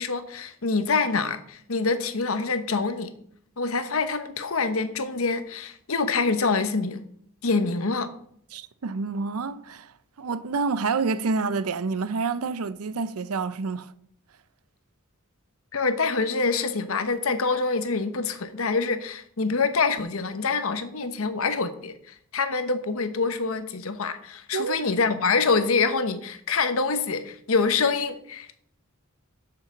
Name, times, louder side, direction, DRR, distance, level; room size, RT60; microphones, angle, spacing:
voice 1, 0.0-3.1 3.6-7.0 7.4-8.1 15.7-28.6, left 4 dB, 70° left, 1.0 m, -26 dB
voice 2, 8.5-9.9 10.2-13.9 24.5-24.8, right 4 dB, 85° right, 0.6 m, -28 dB
6.9 x 5.8 x 7.1 m
head